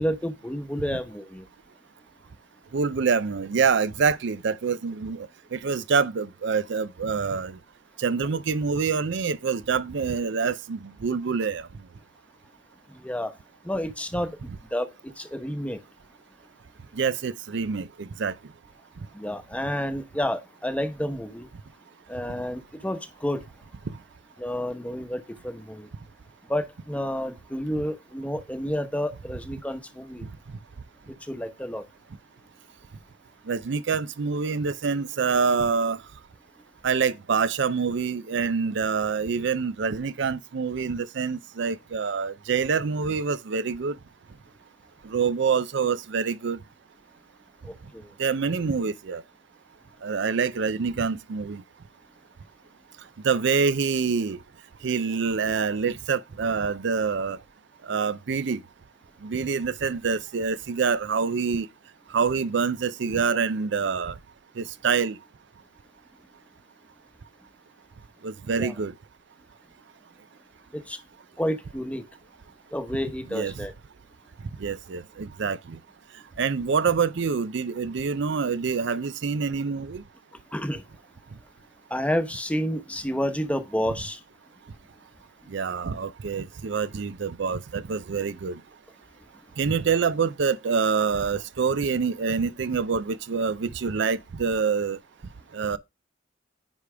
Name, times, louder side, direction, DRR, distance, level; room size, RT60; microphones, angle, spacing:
voice 1, 0.0-1.4 12.9-13.3 13.6-14.4 14.7-14.9 15.2-15.8 19.1-21.5 22.1-23.4 24.4-25.9 26.5-30.3 31.3-31.8 47.6-48.1 48.4-48.5 68.6-68.7 70.7-71.0 71.4-72.0 72.7-73.7 80.5-80.8 81.9-84.2, equal, 5° left, 0.9 m, -30 dB
voice 2, 2.7-7.6 8.0-11.7 16.9-18.3 23.9-24.0 33.5-36.0 36.8-44.0 45.1-46.6 48.2-49.2 50.0-51.6 53.2-54.4 54.8-57.4 57.8-58.6 59.2-61.7 62.1-64.1 64.6-65.2 68.2-68.9 73.3-73.5 74.6-75.8 76.4-80.0 85.5-88.6 89.6-95.0 95.5-95.8, right 5 dB, 65° right, 0.5 m, -26 dB
9.8 x 4.9 x 3.4 m
head